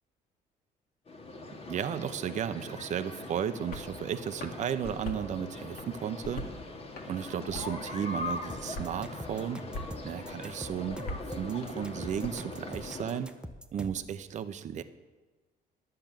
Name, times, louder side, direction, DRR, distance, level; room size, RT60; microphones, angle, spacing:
sound 1, 1.1-13.2, left 2 dB, 40° left, 1.6 m, -41 dB
voice 1, 1.7-6.5 7.1-9.6 10.0-11.0 11.4-13.3 13.7-14.8, right 8 dB, 45° right, 10 dB, 0.7 m, -34 dB
sound 2, 3.7-3.9 4.3-5.3 5.7-6.6 7.0-7.9 8.2-8.9 9.3-9.9 10.3-12.3, left 2 dB, 60° left, 1.8 m, -42 dB
sound 3, 8.5-14.1, equal, 5° right, 0.7 m, -44 dB
10.0 x 6.7 x 9.0 m, 1.2 s
cardioid pair, 110°, 17 cm